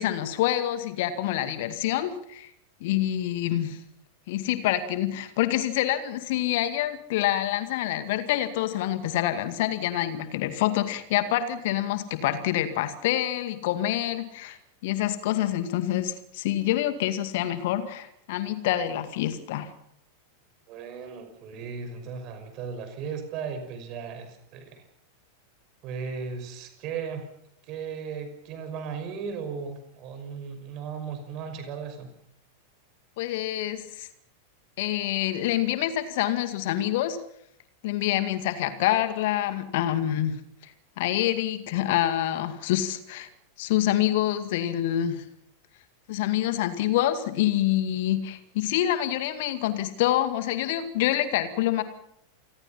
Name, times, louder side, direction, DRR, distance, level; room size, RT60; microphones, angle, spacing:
voice 1, 0.0-2.5 2.8-3.8 4.3-14.6 14.8-19.7 33.2-34.1 34.8-37.2 37.8-40.4 40.6-40.7 41.0-43.3 43.6-45.2 46.1-51.8, left 13 dB, 50° left, 10 dB, 2.1 m, -26 dB
voice 2, 20.7-24.8 25.8-27.3 27.6-32.1, right 6 dB, 40° right, 8 dB, 5.7 m, -36 dB
28.0 x 20.5 x 5.7 m, 0.74 s
figure-of-eight pair, 90°, 0 cm